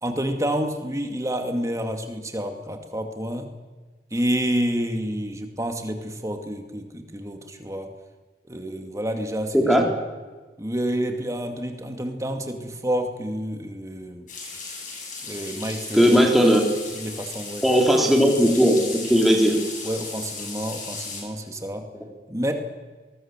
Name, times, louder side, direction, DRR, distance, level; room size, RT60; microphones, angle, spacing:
voice 1, 0.0-3.5 4.1-7.9 8.5-9.9 10.6-14.3 15.2-16.3 16.9-17.6 19.8-21.9 22.3-22.5, equal, 20° right, 5 dB, 2.4 m, -29 dB
sound 1, 14.3-21.2, left 4 dB, 45° left, 7.7 m, -36 dB
voice 2, 15.9-16.6 17.6-19.6, equal, ahead, 0 dB, 3.7 m, -17 dB
24.5 x 20.0 x 7.5 m, 1.3 s
head